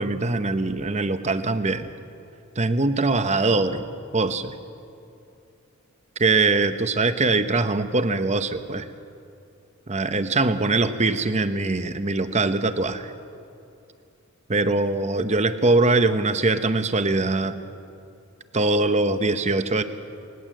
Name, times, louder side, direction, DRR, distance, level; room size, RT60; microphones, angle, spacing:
voice 1, 0.0-1.9 2.6-3.8 4.1-4.5 6.2-8.8 9.9-13.1 14.5-17.6 18.5-19.8, right 3 dB, 30° right, 10 dB, 0.9 m, -22 dB
19.5 x 19.0 x 7.6 m, 2.6 s
head